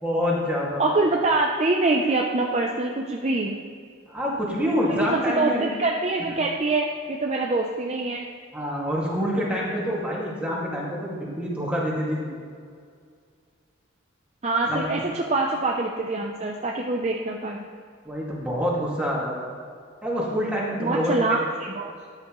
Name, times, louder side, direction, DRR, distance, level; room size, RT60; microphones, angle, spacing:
voice 1, 0.0-0.8 4.1-5.7 6.3-6.4 8.5-12.3 14.7-15.1 18.0-19.3 20.0-21.4, equal, 5° right, -5 dB, 2.1 m, -26 dB
voice 2, 0.8-3.6 4.9-8.3 14.4-17.7 20.8-21.9, right 2 dB, 30° right, 0 dB, 0.6 m, -25 dB
13.0 x 9.6 x 3.1 m, 2.2 s
head